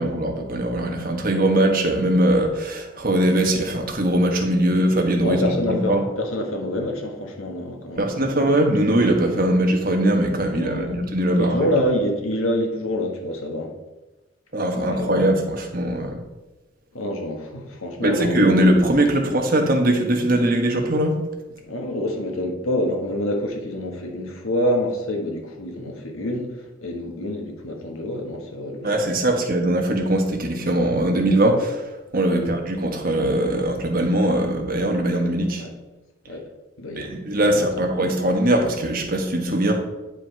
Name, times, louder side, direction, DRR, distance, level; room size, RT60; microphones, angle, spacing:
voice 1, 0.0-6.0 8.0-11.7 14.5-16.2 18.0-21.2 28.8-35.6 36.9-39.7, right 1 dB, 45° right, 3 dB, 1.2 m, -21 dB
voice 2, 5.2-8.3 10.5-11.0 11.4-13.7 14.7-15.2 16.9-18.7 19.2-19.3 21.7-29.0 32.3-32.5 35.6-35.7 36.3-36.4 36.8-37.2 37.5-37.9, left 1 dB, 85° left, 2 dB, 1.4 m, -27 dB
9.2 x 5.2 x 4.5 m, 1.1 s
head